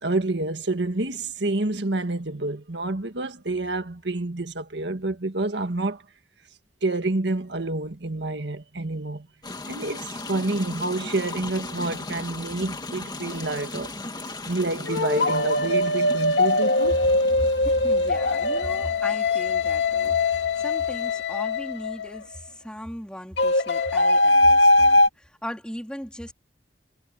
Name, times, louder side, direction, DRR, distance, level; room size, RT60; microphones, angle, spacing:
voice 1, 0.0-6.0 6.8-9.3 9.7-13.9 14.5-17.1, right 2 dB, 80° right, 1.7 m, -28 dB
sound 1, 9.4-21.2, left 2 dB, 25° left, 2.3 m, -38 dB
sound 2, 13.3-13.5 14.9-22.3 23.4-25.1, left 2 dB, 75° left, 2.3 m, -21 dB
voice 2, 17.6-26.3, equal, 5° left, 3.9 m, -38 dB
head